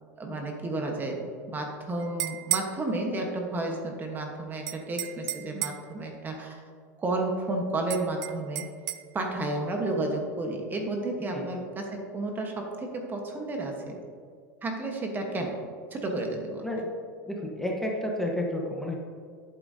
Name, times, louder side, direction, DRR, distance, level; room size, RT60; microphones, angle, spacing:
voice 1, 0.2-6.6 7.0-8.6 9.1-14.0 14.6-15.6 15.9-16.7, right 2 dB, 20° right, 2 dB, 1.2 m, -32 dB
sound 1, 2.0-2.8 4.7-5.9 7.9-9.0, right 15 dB, 45° right, 0.5 m, -32 dB
voice 2, 17.2-19.0, left 1 dB, 5° left, -1 dB, 1.1 m, -31 dB
11.0 x 8.6 x 2.8 m, 2.1 s
supercardioid pair, 130°, 9 cm